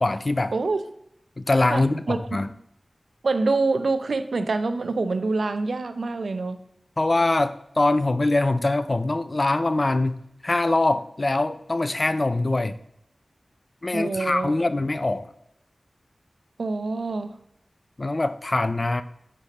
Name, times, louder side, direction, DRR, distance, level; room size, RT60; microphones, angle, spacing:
voice 1, 0.0-0.5 1.4-2.5 7.0-12.8 13.8-15.3 18.0-19.0, left 2 dB, 45° left, 0.5 m, -23 dB
voice 2, 0.5-0.8 1.7-2.2 3.2-6.6 13.9-14.5 16.6-17.4, right 3 dB, 80° right, 0.5 m, -26 dB
6.6 x 5.1 x 4.2 m
cardioid pair, 45°, 0 cm